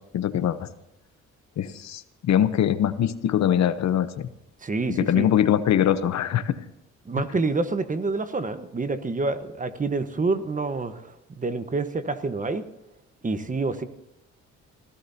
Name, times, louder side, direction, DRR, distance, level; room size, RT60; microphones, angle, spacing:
voice 1, 0.1-0.7 1.6-4.3 5.0-6.6, left 10 dB, 65° left, 12 dB, 0.9 m, -22 dB
voice 2, 4.6-5.3 7.0-12.6 13.2-13.8, right 3 dB, 25° right, 10 dB, 1.2 m, -27 dB
26.0 x 15.5 x 2.8 m, 0.87 s
cardioid pair, 90°, 30 cm